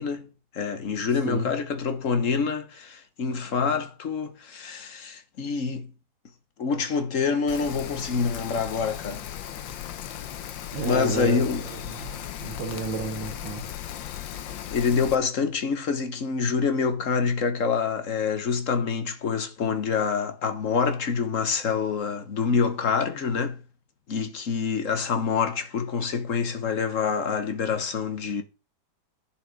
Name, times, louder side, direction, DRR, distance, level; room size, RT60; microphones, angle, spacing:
voice 1, 0.0-5.9 6.6-9.2 10.8-11.7 14.7-23.6 24.1-28.4, left 5 dB, 45° left, 1.4 m, -26 dB
Rain, 7.5-15.1, left 10 dB, 90° left, 1.6 m, -37 dB
voice 2, 10.7-11.4 11.7-13.6, right 4 dB, 90° right, 2.2 m, -32 dB
9.5 x 7.5 x 5.1 m
omnidirectional pair, 2.0 m